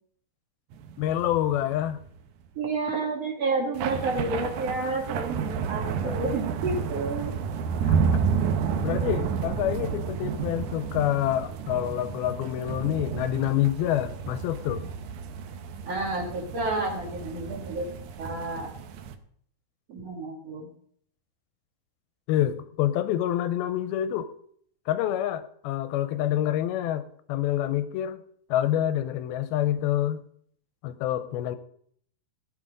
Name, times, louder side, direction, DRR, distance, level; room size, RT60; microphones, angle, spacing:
sound 1, 0.7-2.4 3.7-19.2, right 6 dB, 70° right, 1.9 m, -31 dB
voice 1, 1.0-2.0 6.0-6.2 7.9-8.2 8.8-14.9 22.3-24.3 24.9-28.2 28.5-30.2 30.8-31.6, left 12 dB, 80° left, 11 dB, 2.5 m, -27 dB
voice 2, 2.6-7.4 15.8-17.9 18.2-18.7 19.9-20.7, right 3 dB, 50° right, 1 dB, 2.4 m, -30 dB
16.0 x 9.4 x 5.1 m, 0.64 s
omnidirectional pair, 4.5 m